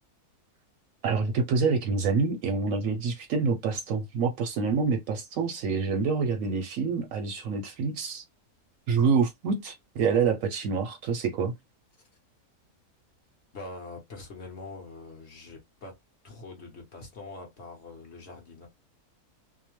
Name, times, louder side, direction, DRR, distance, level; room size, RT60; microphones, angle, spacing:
voice 1, 1.0-8.2 8.9-11.5, right 5 dB, 70° right, 0.8 m, -27 dB
voice 2, 13.5-16.0 16.2-18.7, left 3 dB, 50° left, 1.1 m, -43 dB
2.7 x 2.0 x 3.0 m
omnidirectional pair, 1.6 m